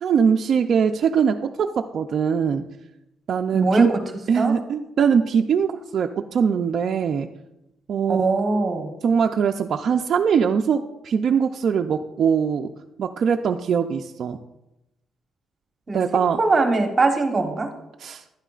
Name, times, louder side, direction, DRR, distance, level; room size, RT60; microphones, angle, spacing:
voice 1, 0.0-2.6 3.3-3.9 4.3-7.3 7.9-8.3 9.0-12.7 13.0-14.4 15.9-16.4 18.0-18.2, right 7 dB, 50° right, 3 dB, 0.5 m, -22 dB
voice 2, 3.5-3.9 4.4-4.5 8.1-8.9 15.9-16.0 16.4-17.7, right 3 dB, 30° right, 4 dB, 1.1 m, -21 dB
14.0 x 11.5 x 2.5 m, 0.91 s
cardioid pair, 130°, 0 cm